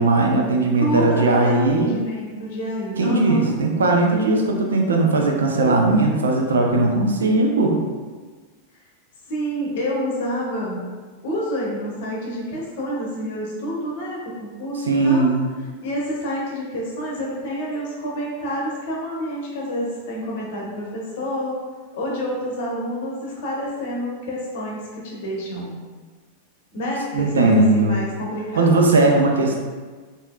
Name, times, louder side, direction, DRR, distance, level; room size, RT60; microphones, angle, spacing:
voice 1, 0.0-2.0 3.0-7.8 14.9-15.5 27.1-28.0 28.5-29.6, right 2 dB, 70° right, 1 dB, 0.4 m, -18 dB
voice 2, 0.8-3.6 5.5-6.3 7.0-8.0 9.3-10.8 11.2-15.3 15.8-21.6 21.9-25.7 26.7-28.7, equal, 50° left, -3 dB, 0.8 m, -28 dB
3.4 x 2.6 x 2.2 m, 1.4 s
figure-of-eight pair, 90°, 0 cm